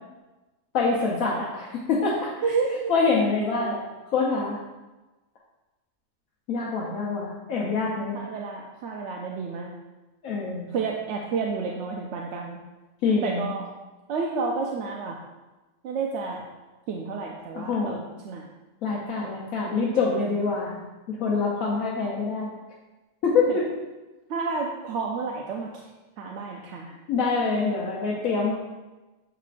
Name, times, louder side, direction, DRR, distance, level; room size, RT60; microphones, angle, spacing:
voice 1, 0.7-2.4 2.9-3.8 4.1-4.6 6.5-8.2 10.2-10.7 13.0-13.4 17.5-18.0 18.8-20.8 21.1-22.5 23.2-23.6 27.1-28.5, left 4 dB, 85° left, -4 dB, 1.2 m, -25 dB
voice 2, 2.4-2.9 3.6-3.7 6.9-7.1 8.1-9.7 10.7-12.6 13.2-13.6 14.1-15.2 15.8-16.4 16.9-18.0 18.2-18.4 24.3-25.7 26.2-26.9, right 4 dB, 65° right, 0 dB, 0.8 m, -30 dB
6.9 x 5.5 x 2.5 m, 1.1 s
omnidirectional pair, 1.4 m